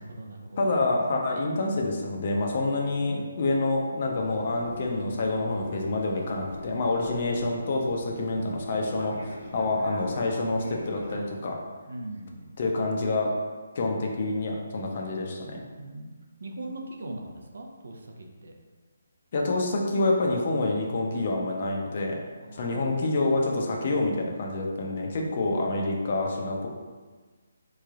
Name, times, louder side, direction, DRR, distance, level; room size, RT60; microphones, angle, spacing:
voice 1, 0.0-0.7 3.0-3.3 11.9-12.5 15.8-16.1 16.4-18.5 22.4-23.4, right 1 dB, 70° right, 2 dB, 0.5 m, -40 dB
voice 2, 0.6-11.6 12.6-13.3 13.7-15.6 19.3-22.2 22.5-26.7, left 2 dB, 40° left, 0 dB, 0.5 m, -27 dB
Fixed-wing aircraft airplane, 4.1-11.2, left 1 dB, 75° left, 1.3 m, -42 dB
3.7 x 3.1 x 2.4 m, 1.4 s
hypercardioid pair, 165°, 0 cm